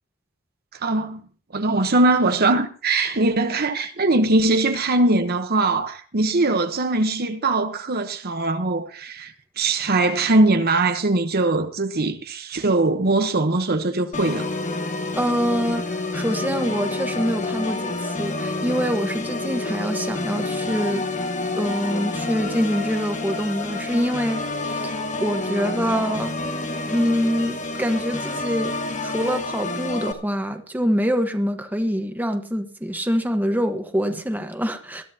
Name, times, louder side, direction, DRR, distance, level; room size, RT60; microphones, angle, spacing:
voice 1, 0.8-1.2 1.5-14.5, right 2 dB, 50° right, 1.0 m, -21 dB
Organ, 14.1-30.1, left 2 dB, 35° left, 1.3 m, -28 dB
voice 2, 15.2-21.0 21.6-24.9 25.2-26.3 26.9-28.7 29.0-35.0, equal, 10° right, 1.2 m, -25 dB
20.5 x 13.0 x 2.8 m
head